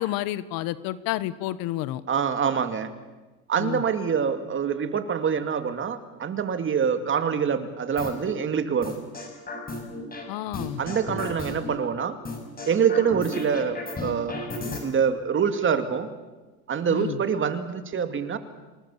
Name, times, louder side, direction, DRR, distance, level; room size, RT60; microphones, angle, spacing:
voice 1, 0.0-2.0 3.6-3.8 10.3-10.8 16.9-17.2, left 14 dB, 55° left, 16 dB, 1.2 m, -30 dB
voice 2, 2.1-2.9 3.5-8.9 10.8-12.2 12.7-14.4 14.8-16.1 16.7-18.4, right 7 dB, 30° right, 9 dB, 2.4 m, -25 dB
sound 1, 8.0-8.3 8.8-10.2 10.5-11.7 12.2-14.8, left 2 dB, 20° left, 6.3 m, -34 dB
27.5 x 20.0 x 7.3 m, 1.2 s
supercardioid pair, 110°, 41 cm